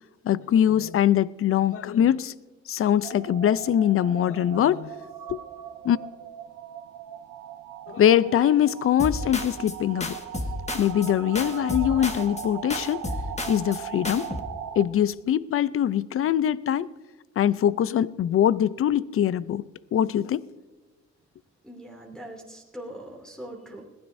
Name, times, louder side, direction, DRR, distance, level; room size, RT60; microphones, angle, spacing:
voice 1, 0.2-2.3 2.7-4.9 5.3-5.4 5.8-6.0 7.9-10.2 10.7-13.1 13.5-14.3 14.8-16.9 17.4-19.6 19.9-20.5, left 10 dB, 45° left, 0.5 m, -23 dB
sound 1, 3.0-14.9, right 9 dB, 75° right, 1.1 m, -39 dB
sound 2, 9.0-9.8 10.0-11.1 11.4-12.4 12.7-13.8 14.0-14.4, left 2 dB, 20° left, 1.4 m, -32 dB
voice 2, 21.6-23.8, right 1 dB, ahead, 2.7 m, -41 dB
21.0 x 15.5 x 2.7 m
cardioid pair, 90°, 30 cm